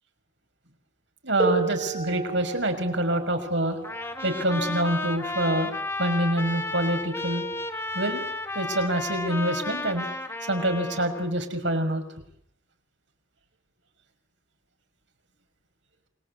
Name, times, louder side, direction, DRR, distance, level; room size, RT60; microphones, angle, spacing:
voice 1, 1.2-3.8 4.2-5.7 6.0-7.5 7.9-8.2 8.5-10.1 10.5-12.0, right 1 dB, 70° right, 5 dB, 6.0 m, -26 dB
sound 1, 1.4-6.8 7.9-8.0 8.8-9.0, right 4 dB, 25° right, 7.4 m, -34 dB
Trumpet, 3.8-11.3, left 2 dB, 15° left, 1.8 m, -33 dB
28.5 x 21.0 x 8.5 m, 0.68 s
head